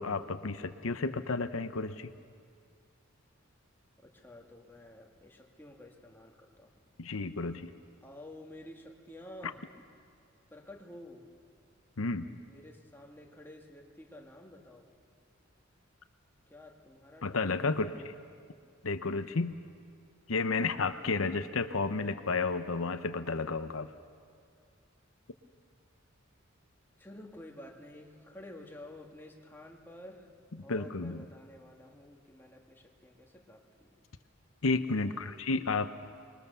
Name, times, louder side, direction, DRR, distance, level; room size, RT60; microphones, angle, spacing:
voice 1, 0.0-2.1 7.0-7.7 12.0-12.3 17.2-17.9 18.8-19.6 20.3-23.9 30.7-31.2 34.6-35.9, left 3 dB, 90° left, 10 dB, 0.8 m, -32 dB
voice 2, 4.0-6.7 8.0-9.7 10.5-11.3 12.4-14.9 16.5-18.1 27.0-30.3 30.6-33.9 35.0-35.4, left 1 dB, 10° left, 0 dB, 2.1 m, -51 dB
26.0 x 22.0 x 7.0 m, 2.2 s
head